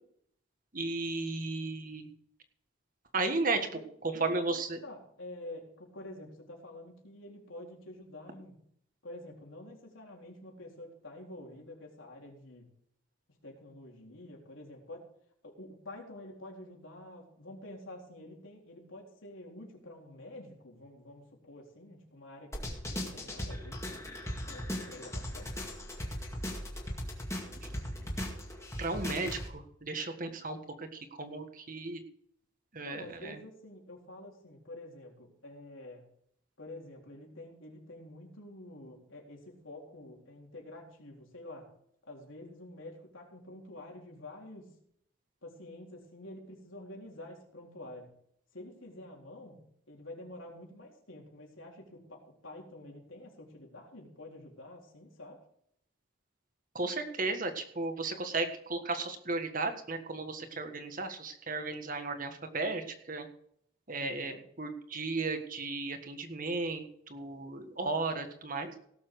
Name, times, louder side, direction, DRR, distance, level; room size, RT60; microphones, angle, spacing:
voice 1, 0.7-2.1 3.1-3.6 4.0-4.8 28.8-32.0 32.7-33.4 56.7-63.3 63.9-68.7, right 3 dB, 45° right, 6 dB, 1.6 m, -35 dB
voice 2, 3.5-3.8 4.1-8.6 9.0-12.7 13.4-15.0 15.4-24.1 24.5-25.5 32.8-36.0 36.6-41.7 42.1-44.7 45.4-48.1 48.5-49.6 49.9-55.4 64.0-64.4, left 1 dB, 85° left, 0 dB, 3.8 m, -48 dB
sound 1, 22.5-29.5, equal, 15° left, 2.1 m, -38 dB
17.5 x 7.2 x 4.8 m, 0.67 s
head